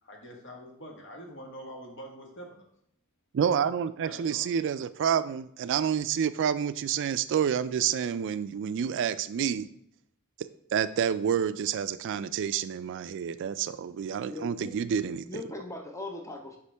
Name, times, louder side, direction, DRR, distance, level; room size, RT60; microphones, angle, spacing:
voice 1, 0.0-2.6 4.0-4.5, equal, 55° left, 1 dB, 1.5 m, -45 dB
voice 2, 3.3-9.7 10.4-15.3, right 8 dB, 55° right, 14 dB, 0.3 m, -29 dB
voice 3, 14.3-14.7 15.3-16.6, left 2 dB, 15° left, 3 dB, 0.6 m, -39 dB
8.2 x 5.1 x 3.4 m, 0.72 s
head